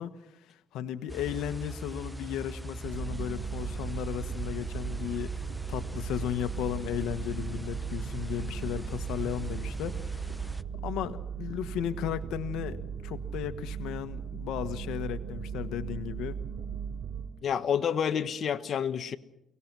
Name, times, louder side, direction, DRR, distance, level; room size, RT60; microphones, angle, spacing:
voice 1, 0.0-5.4 5.7-10.5 10.8-12.8 13.0-16.4, left 11 dB, 90° left, 1.4 m, -35 dB
sound 1, 1.1-10.6, right 2 dB, 5° right, 0.8 m, -40 dB
sound 2, 2.8-17.3, right 7 dB, 60° right, 7.8 m, -37 dB
voice 2, 17.4-19.2, left 8 dB, 55° left, 1.2 m, -29 dB
29.5 x 18.5 x 6.2 m
cardioid pair, 90°, 0 cm